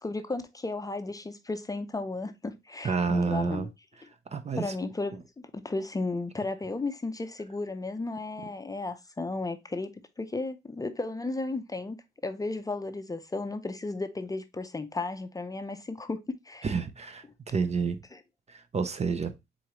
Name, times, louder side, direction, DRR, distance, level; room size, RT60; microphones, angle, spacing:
voice 1, 0.0-3.7 4.6-12.0 12.2-16.7 18.1-18.2, left 3 dB, 15° left, 0.5 m, -34 dB
voice 2, 2.8-3.7 4.3-4.7 16.6-18.0 18.5-19.3, right 5 dB, 35° right, 0.6 m, -29 dB
4.5 x 3.8 x 2.9 m
cardioid pair, 90°, 20 cm